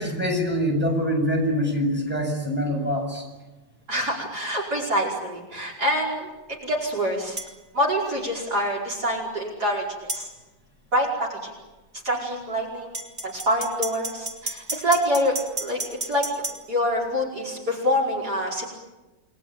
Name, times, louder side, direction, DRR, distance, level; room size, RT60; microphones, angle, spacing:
voice 1, 0.0-3.2, equal, 5° right, 1 dB, 7.7 m, -24 dB
voice 2, 3.9-6.3 6.6-7.4 7.7-9.9 10.1-10.3 10.9-11.5 12.0-12.9 13.2-15.4 15.6-16.3 16.7-18.7, equal, 55° right, 0 dB, 5.5 m, -25 dB
sound 1, 7.4-7.5 10.1-10.3 12.9-16.6, right 2 dB, 25° right, 3.2 m, -32 dB
30.0 x 21.5 x 9.1 m, 1.1 s
omnidirectional pair, 2.0 m